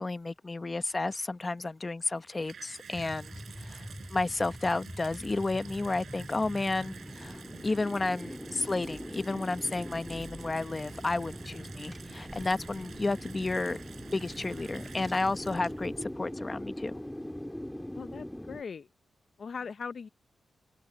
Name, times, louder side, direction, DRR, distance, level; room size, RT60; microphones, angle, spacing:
voice 1, 0.0-13.8 14.1-16.9, left 3 dB, 25° left, 0.9 m, -32 dB
Water tap faucet / Bathtub (filling or washing), 2.0-16.1 16.9-17.0, right 7 dB, 65° right, 4.3 m, -50 dB
sound 1, 2.9-18.6, left 1 dB, 5° left, 1.7 m, -42 dB
Car / Engine, 8.8-16.0, right 1 dB, 10° right, 1.7 m, -49 dB
voice 2, 17.9-18.9 19.4-20.1, left 5 dB, 55° left, 0.6 m, -39 dB
open air
wide cardioid pair, 125°, 0 cm